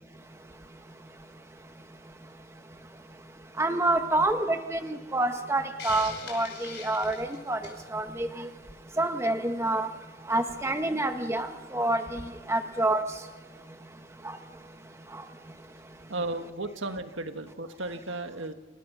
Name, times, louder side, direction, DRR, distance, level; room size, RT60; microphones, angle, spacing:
voice 1, 3.6-7.6 7.9-8.3 9.0-9.9 10.3-12.2 12.5-13.0, right 2 dB, 15° right, 1.1 m, -27 dB
Hiss, 5.8-7.9, left 5 dB, 55° left, 5.4 m, -41 dB
voice 2, 16.1-18.5, right 2 dB, 80° right, 1.5 m, -34 dB
27.0 x 18.0 x 6.1 m
head